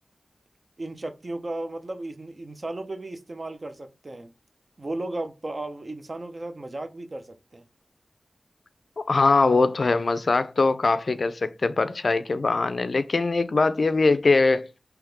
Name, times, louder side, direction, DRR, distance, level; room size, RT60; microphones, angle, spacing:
voice 1, 0.8-4.3 4.8-7.6, right 2 dB, 45° right, 0.6 m, -35 dB
voice 2, 9.0-14.7, left 3 dB, 65° left, 0.3 m, -22 dB
3.5 x 3.0 x 3.3 m
wide cardioid pair, 55°, 0 cm